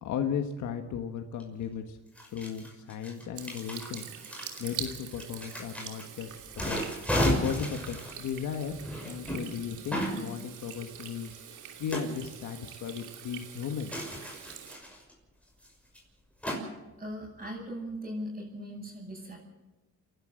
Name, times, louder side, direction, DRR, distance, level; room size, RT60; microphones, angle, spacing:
voice 1, 0.0-2.0 2.3-4.1 4.6-6.8 7.2-8.7 9.0-13.9, left 7 dB, 75° left, 5 dB, 1.6 m, -36 dB
sound 1, 1.4-1.5 2.2-6.0 6.4-9.4 9.9-10.2 11.9-12.1 13.9-15.1 15.6-15.7 15.9-16.0 16.4-16.6, equal, 5° left, 6.0 m, -33 dB
Water tap faucet / Sink (filling or washing), 3.4-14.8, right 9 dB, 80° right, 2.9 m, -45 dB
voice 2, 17.0-19.4, equal, 25° right, -7 dB, 7.8 m, -39 dB
29.0 x 12.0 x 7.7 m, 1.1 s
cardioid pair, 90°, 30 cm